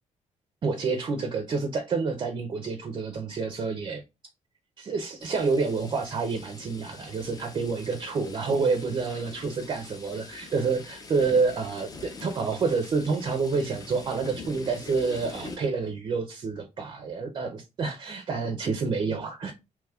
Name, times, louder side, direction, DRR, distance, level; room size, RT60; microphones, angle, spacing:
voice 1, 0.6-4.0 4.8-19.5, right 4 dB, 35° right, 0.4 m, -28 dB
sound 1, 5.2-15.6, left 3 dB, 30° left, 0.5 m, -44 dB
3.0 x 2.2 x 3.3 m
cardioid pair, 160°, 13 cm